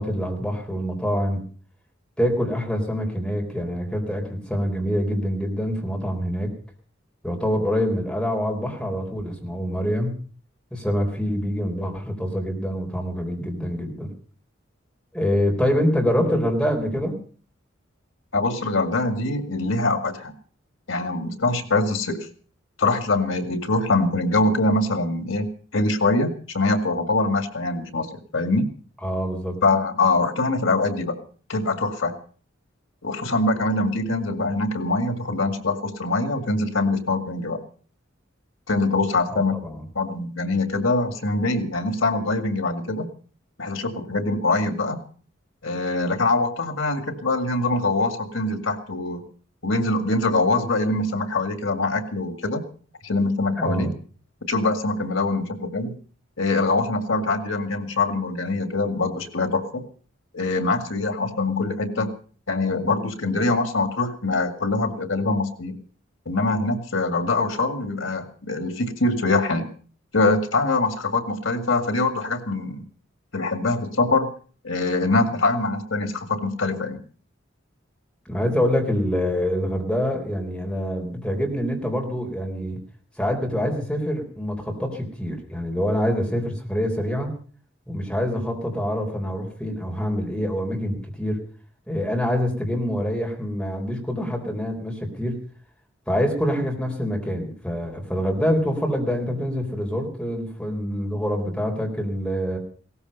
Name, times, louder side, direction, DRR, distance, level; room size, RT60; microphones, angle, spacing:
voice 1, 0.0-1.4 2.2-6.5 7.2-10.1 10.7-14.1 15.1-17.2 29.0-29.6 39.3-39.8 53.6-53.9 78.3-82.8 83.2-87.3 87.9-91.4 91.9-95.4 96.1-102.6, equal, 5° left, 1 dB, 3.9 m, -25 dB
voice 2, 18.3-20.3 20.9-22.2 22.8-28.1 28.3-28.7 29.6-31.2 31.5-32.1 33.0-37.6 38.7-39.6 40.0-43.1 43.6-45.0 45.6-49.2 49.6-52.6 53.0-53.9 54.5-56.0 56.4-59.8 60.3-62.1 62.5-65.7 66.3-69.7 70.1-72.8 73.3-74.3 74.6-77.0, left 2 dB, 85° left, 8 dB, 2.2 m, -23 dB
17.5 x 14.0 x 5.5 m, 0.42 s
head